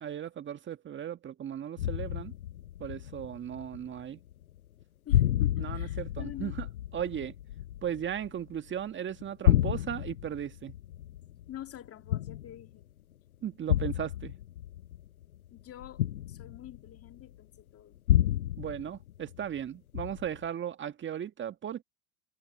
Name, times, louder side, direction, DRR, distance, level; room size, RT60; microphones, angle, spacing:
voice 1, 0.0-2.3 2.8-4.2 5.6-6.7 6.9-7.3 7.8-10.7 13.4-14.3 18.6-21.8, right 9 dB, 25° right, 1.6 m, -36 dB
sound 1, 1.8-4.0 4.3-4.8 5.1-8.8 9.2-12.8 13.7-17.2 18.1-19.6 19.9-20.5, left 12 dB, 80° left, 0.7 m, -31 dB
voice 2, 5.1-6.6 11.5-12.8 15.5-18.0, left 12 dB, 35° left, 2.3 m, -47 dB
hypercardioid pair, 85°, 43 cm